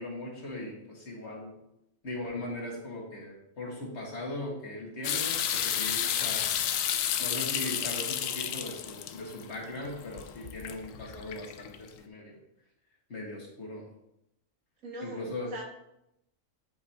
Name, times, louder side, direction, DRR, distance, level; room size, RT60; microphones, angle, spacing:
voice 1, 0.0-1.6 2.0-6.4 7.2-12.4 13.1-13.8 15.0-15.5, left 1 dB, 55° left, -2 dB, 2.2 m, -39 dB
sound 1, 5.0-11.9, left 9 dB, 80° left, 1.0 m, -32 dB
voice 2, 14.8-15.7, right 2 dB, 75° right, -1 dB, 1.9 m, -41 dB
11.5 x 5.4 x 2.8 m, 0.84 s
omnidirectional pair, 1.4 m